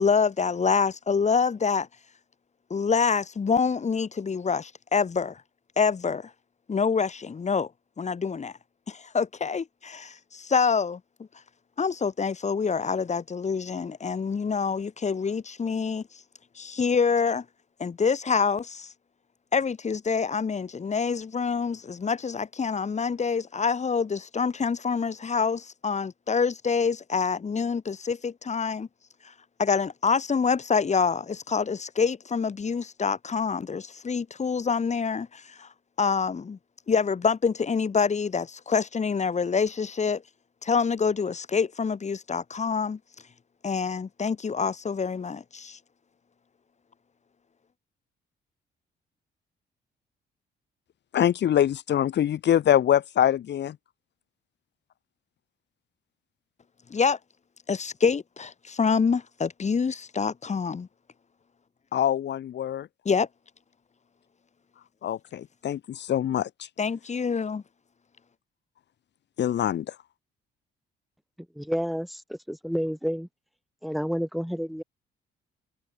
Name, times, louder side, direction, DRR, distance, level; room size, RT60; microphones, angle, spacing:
voice 1, 0.0-1.9 2.7-5.4 5.8-6.3 6.7-7.7 8.0-8.5 8.9-11.0 11.8-16.0 16.6-17.4 17.8-18.9 19.5-28.9 29.6-35.7 36.0-36.6 36.9-40.2 40.6-43.0 43.6-45.8 56.9-57.2 57.7-60.9 63.0-63.3 66.8-67.6, left 5 dB, 35° left, 2.3 m, -26 dB
voice 2, 51.1-53.8 61.9-62.9 65.0-66.5 69.4-69.9, left 10 dB, 60° left, 1.3 m, -24 dB
voice 3, 71.5-73.3 73.8-74.8, equal, ahead, 4.9 m, -30 dB
cardioid pair, 90°, 20 cm